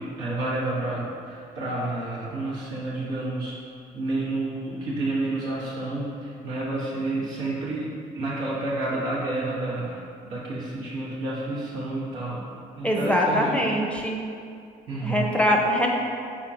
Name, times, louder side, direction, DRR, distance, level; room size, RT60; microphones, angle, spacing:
voice 1, 0.0-3.6 3.9-12.4 12.7-13.6 14.9-15.3, right 2 dB, 90° right, -8 dB, 1.1 m, -30 dB
voice 2, 12.8-14.2 15.0-15.9, equal, 5° left, 0 dB, 0.6 m, -23 dB
4.3 x 3.7 x 2.6 m, 2.3 s
supercardioid pair, 55°, 19 cm